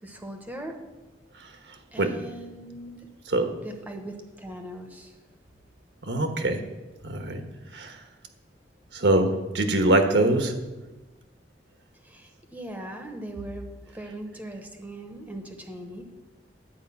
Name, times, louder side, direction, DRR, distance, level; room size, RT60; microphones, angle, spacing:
voice 1, 0.0-0.7 1.9-3.1 3.6-5.2 12.0-16.0, right 1 dB, 10° right, 3 dB, 0.9 m, -39 dB
voice 2, 6.1-6.6 7.0-7.4 7.7-8.0 8.9-10.5, right 2 dB, 80° right, 6 dB, 1.3 m, -23 dB
10.5 x 5.0 x 8.3 m, 1.1 s
head